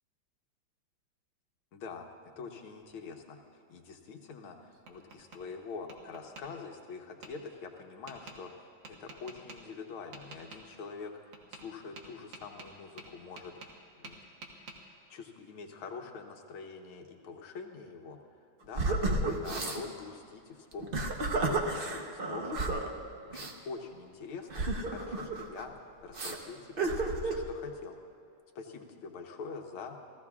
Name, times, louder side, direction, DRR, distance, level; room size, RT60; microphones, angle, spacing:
voice 1, 1.7-2.1 2.4-3.4 3.7-11.1 11.5-13.5 14.0-14.2 15.1-18.2 18.6-22.8 23.3-25.7 26.0-26.9 27.2-28.0 28.6-30.0, left 5 dB, 80° left, 3 dB, 1.9 m, -45 dB
Tap, 4.4-5.4 5.9-6.5 7.2-7.3 8.1-8.4 8.8-9.6 10.1-10.6 11.3-11.7 12.0-13.8 14.0-14.8, right 3 dB, 65° right, 2.1 m, -48 dB
sound 1, 18.7-19.8 20.7-22.9 23.3-23.5 24.5-25.6 26.1-26.4 26.8-27.4, right 2 dB, 45° right, 0.7 m, -32 dB
28.5 x 15.5 x 2.4 m, 2.4 s
omnidirectional pair, 2.3 m